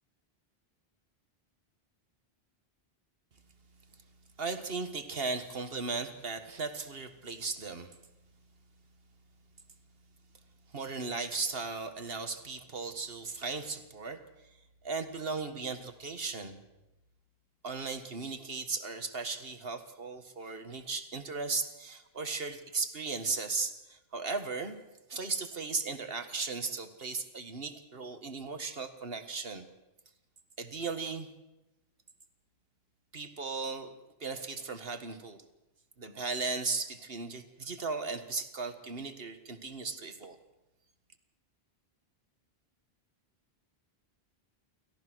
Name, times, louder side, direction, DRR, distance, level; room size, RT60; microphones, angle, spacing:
voice 1, 4.4-8.0 10.7-14.6 14.8-16.6 17.6-24.8 25.1-29.7 30.6-31.3 33.1-33.9 34.2-35.4 36.0-40.4, right 4 dB, 65° right, 8 dB, 1.9 m, -36 dB
29.5 x 14.0 x 6.3 m, 0.96 s
omnidirectional pair, 1.0 m